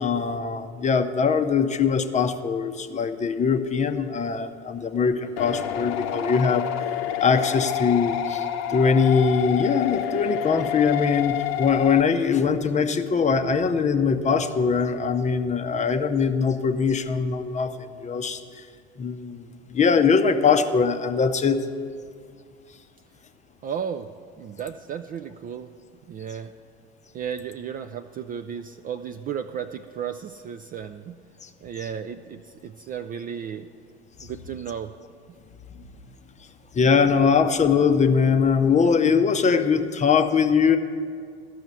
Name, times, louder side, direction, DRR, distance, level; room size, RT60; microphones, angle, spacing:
voice 1, 0.0-6.9 7.2-18.4 19.0-21.6 31.4-31.5 36.7-40.8, left 5 dB, 20° left, 8 dB, 0.6 m, -22 dB
sound 1, 5.4-12.0, left 10 dB, 50° left, 0.8 m, -28 dB
voice 2, 23.6-24.1 24.4-25.7 26.1-26.5 27.1-31.2 31.6-33.7 34.2-34.9, right 8 dB, 25° right, 7 dB, 0.3 m, -34 dB
13.0 x 6.3 x 8.2 m, 2.1 s
hypercardioid pair, 75°, 33 cm